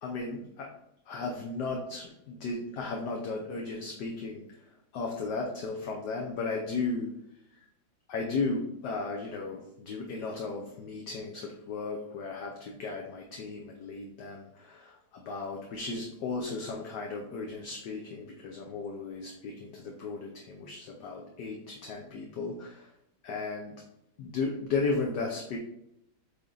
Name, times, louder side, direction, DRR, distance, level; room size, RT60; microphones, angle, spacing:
voice 1, 0.0-0.7 1.1-7.1 8.1-22.9 23.2-23.8 24.2-25.6, left 3 dB, 65° left, 0 dB, 1.4 m, -35 dB
8.8 x 3.4 x 3.9 m, 0.80 s
omnidirectional pair, 2.1 m